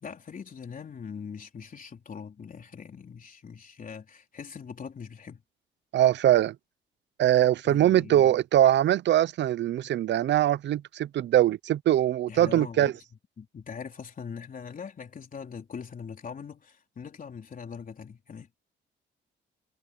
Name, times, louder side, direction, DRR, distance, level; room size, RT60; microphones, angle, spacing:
voice 1, 0.0-5.4 7.7-8.3 12.3-13.0 13.4-18.5, left 6 dB, 45° left, 3.9 m, -41 dB
voice 2, 5.9-6.5 7.2-12.9, right 12 dB, 65° right, 0.7 m, -22 dB
cardioid pair, 90°, 20 cm